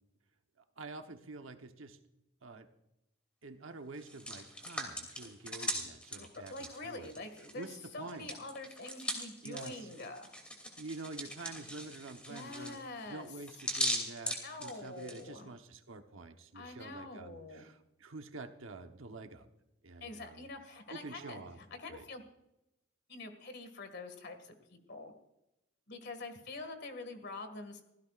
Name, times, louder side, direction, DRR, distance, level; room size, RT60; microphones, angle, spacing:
voice 1, 0.8-2.0 2.4-2.7 3.4-7.1 7.5-8.3 9.4-9.9 10.8-12.8 13.1-19.5 19.8-20.5 20.9-21.6 21.9-22.0, right 3 dB, 75° right, 7 dB, 1.1 m, -47 dB
Hands, 3.9-7.6 7.9-15.2, equal, 5° left, 2.8 m, -39 dB
voice 2, 6.2-10.3 12.3-13.3 14.4-15.5 16.5-17.7 20.0-22.2 23.1-25.1 25.9-27.8, left 2 dB, 55° left, 7 dB, 2.0 m, -46 dB
25.5 x 16.0 x 2.5 m, 0.90 s
head